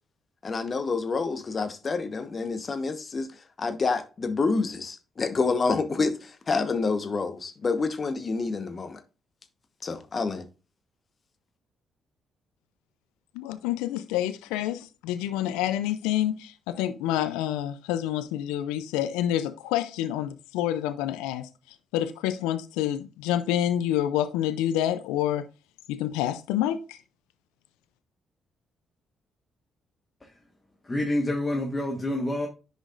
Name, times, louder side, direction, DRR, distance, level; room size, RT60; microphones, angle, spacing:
voice 1, 0.4-3.3 3.6-9.0 9.8-10.4, left 4 dB, 45° left, 1.1 m, -28 dB
voice 2, 13.3-25.5 25.9-27.0, left 12 dB, 85° left, 0.4 m, -28 dB
voice 3, 30.8-32.5, left 1 dB, 25° left, 1.5 m, -28 dB
10.0 x 5.0 x 2.5 m
hypercardioid pair, 50°, 0 cm